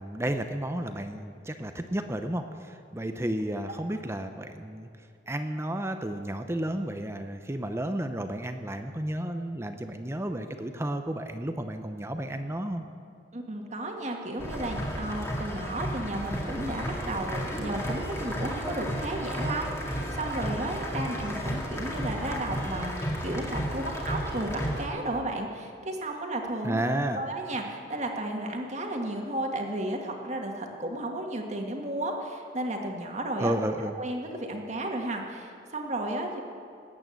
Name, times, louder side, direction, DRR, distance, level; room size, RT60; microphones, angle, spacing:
voice 1, 0.0-4.9 5.3-12.8 26.6-27.2 33.4-33.9, right 1 dB, 15° right, 7 dB, 0.6 m, -32 dB
voice 2, 13.3-26.8 27.1-33.5 34.0-36.4, right 1 dB, 40° right, 2 dB, 1.8 m, -33 dB
sound 1, 14.4-24.8, equal, 15° left, 2.1 m, -33 dB
19.5 x 8.7 x 7.8 m, 2.5 s
head